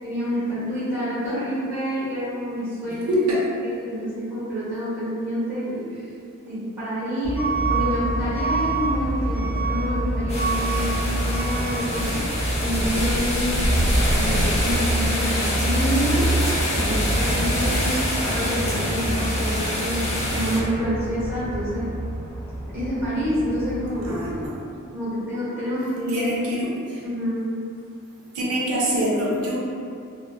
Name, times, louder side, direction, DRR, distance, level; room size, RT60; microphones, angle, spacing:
voice 1, 0.0-3.1 3.6-5.8 6.4-12.2 12.6-13.6 14.1-16.4 16.7-21.9 22.7-24.2 24.9-26.3 27.0-27.4, equal, 10° right, -11 dB, 0.9 m, -28 dB
voice 2, 3.1-3.4 24.0-24.7 26.1-27.0 28.3-29.6, equal, 80° right, -5 dB, 0.5 m, -25 dB
Truck / Alarm, 7.2-24.5, right 1 dB, 5° left, 1.1 m, -26 dB
sound 1, 10.3-20.6, left 1 dB, 30° left, 0.5 m, -26 dB
2.6 x 2.2 x 2.2 m, 2.4 s
head